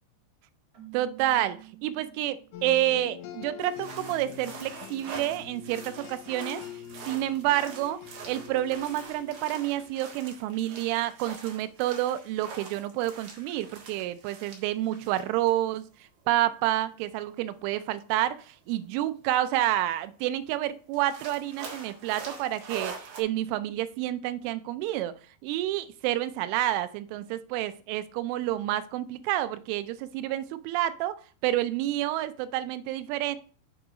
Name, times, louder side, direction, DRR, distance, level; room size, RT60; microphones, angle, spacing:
Keyboard (musical), 0.7-2.7, right 18 dB, 30° right, 3.5 m, -49 dB
voice 1, 0.9-6.6 7.1-8.0 8.3-15.9 16.3-25.1 25.4-33.4, right 13 dB, 90° right, 13 dB, 3.0 m, -29 dB
sound 1, 2.5-10.1, left 9 dB, 80° left, 3.3 m, -44 dB
sound 2, 3.6-15.5 15.8-15.9 16.9-17.0 19.2-19.3 19.7-19.8 20.1-20.2 20.9-23.2, right 5 dB, 60° right, 2.1 m, -44 dB
7.1 x 4.6 x 4.9 m, 0.42 s
omnidirectional pair, 5.4 m